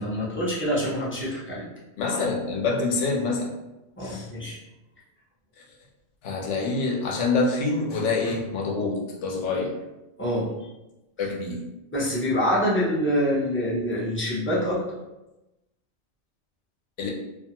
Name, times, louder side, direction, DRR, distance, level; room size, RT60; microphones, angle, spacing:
voice 1, 0.0-1.7 4.0-4.6 10.2-10.5 11.9-15.0, equal, 15° left, -7 dB, 0.5 m, -26 dB
voice 2, 2.0-3.5 4.0-4.3 6.2-9.7 11.2-11.6 17.0-17.1, left 3 dB, 75° left, -1 dB, 0.9 m, -26 dB
2.5 x 2.3 x 2.8 m, 0.99 s
omnidirectional pair, 1.2 m